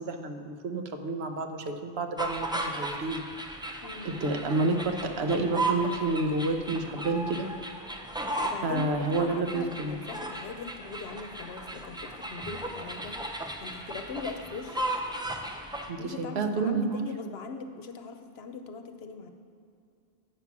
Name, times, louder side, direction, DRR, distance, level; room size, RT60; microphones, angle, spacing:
voice 1, 0.0-3.2 3.6-3.8 4.0-7.5 8.6-10.0 15.9-17.0, right 3 dB, 80° right, 6 dB, 1.0 m, -29 dB
sound 1, 2.2-15.9, right 1 dB, 5° right, 0.4 m, -36 dB
voice 2, 3.8-4.2 8.4-13.2 13.6-14.9 16.0-19.3, left 5 dB, 75° left, 6 dB, 0.9 m, -40 dB
8.8 x 5.9 x 5.9 m, 2.5 s
omnidirectional pair, 1.1 m